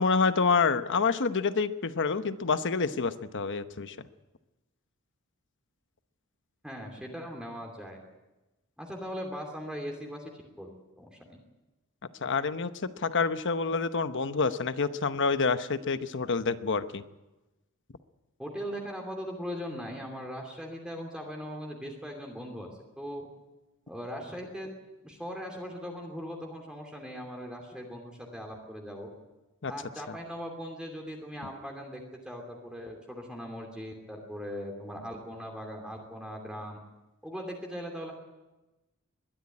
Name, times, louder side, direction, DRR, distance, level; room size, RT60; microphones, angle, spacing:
voice 1, 0.0-4.0 12.2-12.7 13.0-17.0 29.6-29.7, left 4 dB, 55° left, 11 dB, 0.9 m, -27 dB
voice 2, 6.6-8.0 8.8-10.3 10.6-10.7 11.0-11.4 18.4-22.7 23.0-23.2 23.9-24.7 25.0-29.1 29.7-36.8 37.2-38.1, equal, 5° right, 0 dB, 2.7 m, -39 dB
21.5 x 13.0 x 9.7 m, 1.1 s
head